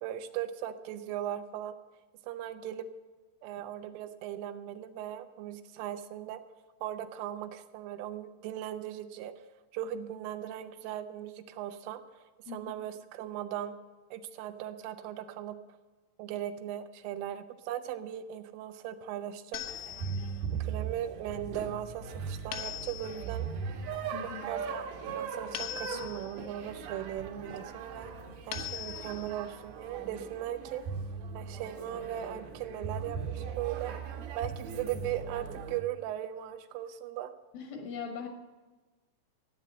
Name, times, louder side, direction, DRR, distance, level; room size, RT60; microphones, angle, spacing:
voice 1, 0.0-1.8 2.2-2.9 3.4-6.4 6.8-9.3 9.7-12.0 12.5-13.8 14.1-15.6 16.2-19.6 20.5-23.5 24.2-28.1 28.5-30.8 31.3-34.0 34.3-37.3, right 11 dB, 90° right, 8 dB, 3.4 m, -38 dB
sound 1, 19.5-20.5 22.5-23.4 25.6-26.5 28.5-29.4, left 12 dB, 90° left, 3.7 m, -41 dB
sound 2, 19.6-35.8, right 6 dB, 70° right, 3.4 m, -39 dB
voice 2, 24.1-24.4 37.5-38.3, left 6 dB, 70° left, 4 dB, 2.2 m, -40 dB
14.0 x 9.2 x 7.5 m, 1.2 s
omnidirectional pair, 5.6 m